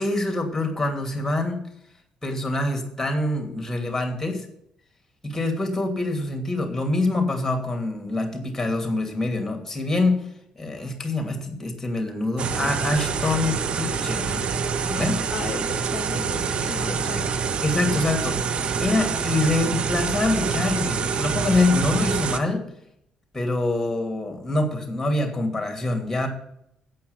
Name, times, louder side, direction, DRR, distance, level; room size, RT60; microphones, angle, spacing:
voice 1, 0.0-1.6 2.2-4.4 5.2-10.2 10.6-14.4 14.9-15.2 17.6-22.6 23.3-26.3, left 2 dB, 10° left, 3 dB, 2.7 m, -25 dB
sound 1, 12.4-22.4, right 6 dB, 45° right, 0.8 m, -26 dB
voice 2, 14.1-14.5 15.3-17.3, left 5 dB, 45° left, 6 dB, 0.9 m, -35 dB
8.5 x 7.9 x 7.9 m, 0.76 s
figure-of-eight pair, 45°, 3 cm